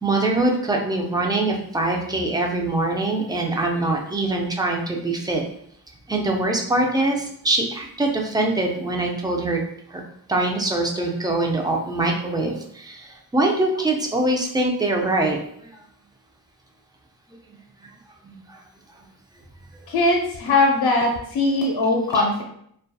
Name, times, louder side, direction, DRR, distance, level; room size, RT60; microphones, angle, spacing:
voice 1, 0.0-5.4 6.1-9.6 9.9-10.0 10.3-13.0 13.3-15.4 18.2-18.4 22.1-22.2, right 2 dB, 10° right, 1 dB, 0.4 m, -23 dB
voice 2, 19.9-22.4, left 2 dB, 90° left, 0 dB, 0.5 m, -20 dB
2.7 x 2.2 x 2.2 m, 0.69 s
wide cardioid pair, 85°, 38 cm